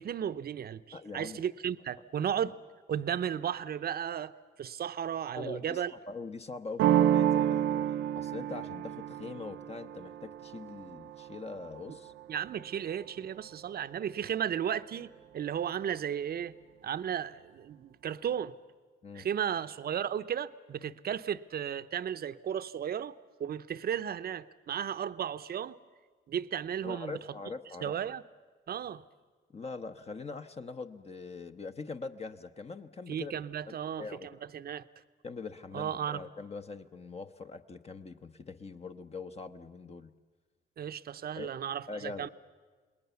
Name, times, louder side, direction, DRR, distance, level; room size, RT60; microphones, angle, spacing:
voice 1, 0.0-2.6 2.9-4.3 4.6-5.9 12.3-16.5 16.8-18.5 19.1-25.8 26.3-27.2 27.8-28.2 28.7-29.0 33.1-34.8 35.7-36.2 40.8-42.3, right 9 dB, 50° right, 0.8 m, -34 dB
voice 2, 0.9-1.4 5.3-7.9 8.2-12.1 19.0-19.3 26.8-27.9 29.5-33.4 33.7-34.3 35.2-40.1 41.3-41.5 41.9-42.3, left 4 dB, 30° left, 1.0 m, -42 dB
sound 1, 6.8-12.3, right 11 dB, 85° right, 0.7 m, -30 dB
28.5 x 20.0 x 7.0 m
cardioid pair, 90°, 20 cm